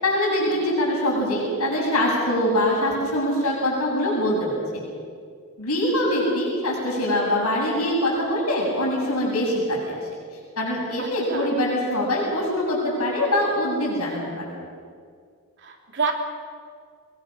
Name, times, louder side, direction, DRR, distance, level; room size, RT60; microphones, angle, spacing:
voice 1, 0.0-4.6 5.6-10.1 10.6-14.6, left 1 dB, 80° left, -3 dB, 7.8 m, -23 dB
voice 2, 11.0-11.5 15.6-16.1, right 5 dB, 55° right, 2 dB, 3.4 m, -28 dB
25.0 x 22.0 x 6.5 m, 2.1 s
head